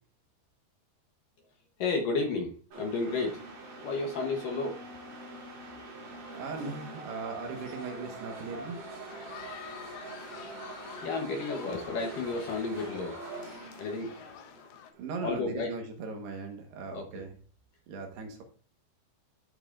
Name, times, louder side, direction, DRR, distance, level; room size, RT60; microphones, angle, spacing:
voice 1, 1.8-3.4 3.8-4.8 11.0-13.2 13.8-14.1 15.2-15.8 16.9-17.2, left 3 dB, 65° left, 1 dB, 2.3 m, -32 dB
sound 1, 2.7-15.0, right 2 dB, 50° right, 4.3 m, -44 dB
voice 2, 6.0-8.8 15.0-17.4 17.9-18.4, right 4 dB, 70° right, 3 dB, 3.3 m, -39 dB
sound 2, 9.1-14.9, left 10 dB, 85° left, 3.2 m, -48 dB
12.5 x 8.0 x 2.6 m, 0.42 s
omnidirectional pair, 5.1 m